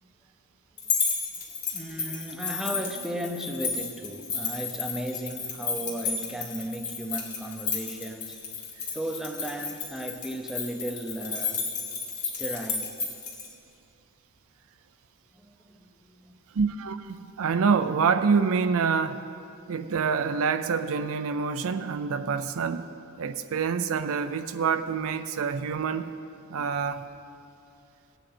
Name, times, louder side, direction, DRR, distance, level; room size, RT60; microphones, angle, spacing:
sound 1, 0.8-13.5, left 5 dB, 85° left, 2.4 m, -32 dB
voice 1, 1.7-8.4 8.9-11.7 12.2-13.0 15.3-16.6 17.1-17.2, equal, ahead, 0.7 m, -35 dB
voice 2, 16.5-19.2 19.7-22.8 23.2-26.1 26.5-27.0, right 5 dB, 65° right, 0.5 m, -26 dB
16.5 x 9.1 x 4.3 m
head